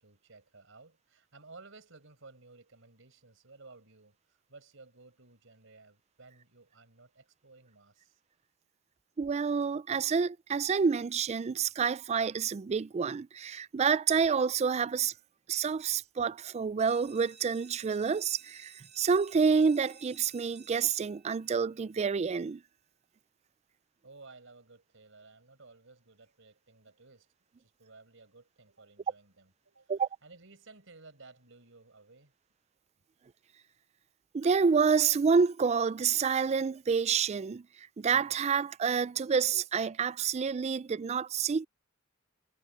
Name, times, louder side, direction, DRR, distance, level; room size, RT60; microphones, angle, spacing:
voice 1, 0.0-8.2 24.0-27.3 27.6-29.9 30.2-32.3, right 3 dB, 65° right, 5.2 m, -56 dB
voice 2, 9.2-15.1 15.5-22.6 29.9-30.1 34.3-37.7 38.0-41.7, right 6 dB, 30° right, 0.3 m, -28 dB
sound 1, 16.8-22.2, right 8 dB, 50° right, 2.6 m, -55 dB
head